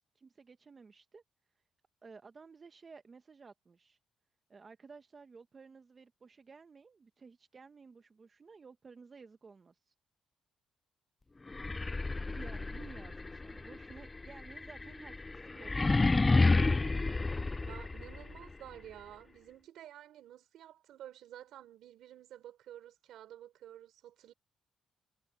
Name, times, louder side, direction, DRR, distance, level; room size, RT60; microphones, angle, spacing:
voice 1, 0.1-1.2 2.0-4.0 4.5-9.9 12.3-16.1, right 5 dB, 35° right, 1.1 m, -54 dB
sound 1, 11.5-18.4, left 3 dB, 20° left, 0.3 m, -30 dB
voice 2, 17.7-24.3, right 12 dB, 80° right, 4.4 m, -51 dB
cardioid pair, 90°, 0 cm